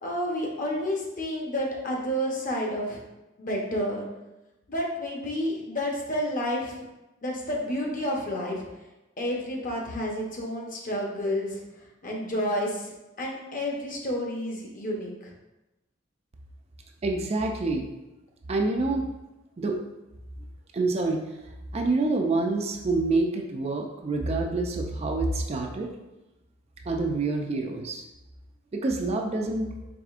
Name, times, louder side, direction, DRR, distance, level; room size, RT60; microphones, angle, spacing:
voice 1, 0.0-3.0 3.4-4.1 4.7-6.8 7.2-8.6 9.2-11.6 12.0-15.3, equal, 45° left, -1 dB, 0.8 m, -30 dB
voice 2, 17.0-17.9 18.5-19.1 19.6-19.8 20.7-21.2 21.7-25.9 26.9-28.0 28.7-29.7, right 3 dB, 30° right, 2 dB, 0.4 m, -27 dB
4.8 x 3.4 x 2.4 m, 1.0 s
head